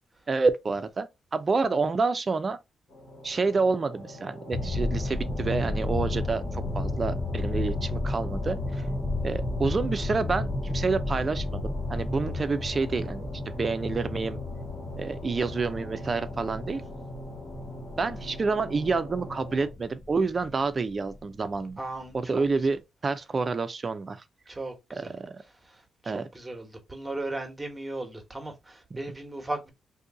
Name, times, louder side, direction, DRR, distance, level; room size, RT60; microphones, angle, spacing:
voice 1, 0.3-2.6 3.2-8.8 9.2-14.4 15.0-16.8 18.0-21.8 22.1-24.2 24.9-25.4 26.1-26.3 28.9-29.0, right 4 dB, 40° right, 0.5 m, -28 dB
sound 1, 2.9-19.7, equal, 70° left, 1.5 m, -42 dB
sound 2, 4.5-20.5 20.8-20.9 21.2-21.3 21.5-21.8 22.0-22.3 22.7-22.8, left 2 dB, 30° left, 0.8 m, -32 dB
voice 2, 21.8-22.4 24.5-25.1 25.6-29.7, right 2 dB, 15° right, 1.2 m, -37 dB
2.7 x 2.5 x 3.8 m
supercardioid pair, 60°, 0 cm